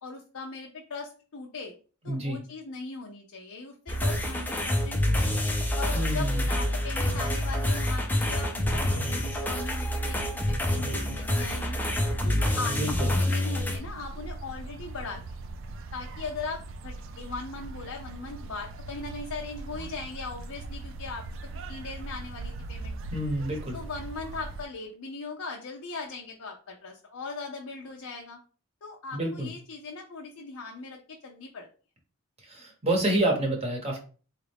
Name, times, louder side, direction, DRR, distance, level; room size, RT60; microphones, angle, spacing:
voice 1, 0.0-1.7 2.0-5.5 5.8-10.2 10.5-11.8 12.2-15.2 15.9-21.2 21.7-23.0 23.7-28.4 28.8-31.7, left 4 dB, 75° left, 0 dB, 0.6 m, -39 dB
voice 2, 2.1-2.4 5.9-6.5 12.7-13.1 23.1-23.8 29.1-29.5 32.4-34.0, right 1 dB, 30° right, 1 dB, 0.9 m, -28 dB
sound 1, 3.9-13.8, left 1 dB, 10° left, 0.5 m, -27 dB
sound 2, 13.5-24.6, right 2 dB, 60° right, 0.4 m, -40 dB
4.0 x 2.4 x 3.3 m, 0.38 s
head